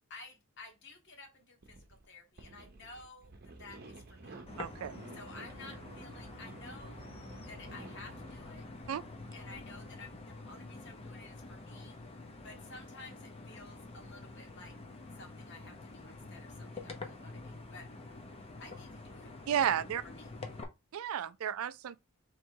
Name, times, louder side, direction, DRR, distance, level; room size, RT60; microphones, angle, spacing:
voice 1, 0.1-4.5 5.1-7.1 7.5-8.7 9.3-12.0 12.4-14.8 15.2-17.9 18.6-19.3 20.0-20.3, left 3 dB, 55° left, 1.3 m, -53 dB
sound 1, 1.6-2.1 2.4-9.6, right 2 dB, 45° right, 0.8 m, -51 dB
sound 2, 4.5-20.6, left 3 dB, 25° left, 0.7 m, -47 dB
voice 2, 4.6-5.0 8.9-9.0 19.5-20.0 20.9-22.0, right 9 dB, 75° right, 0.4 m, -32 dB
3.5 x 3.1 x 4.6 m
head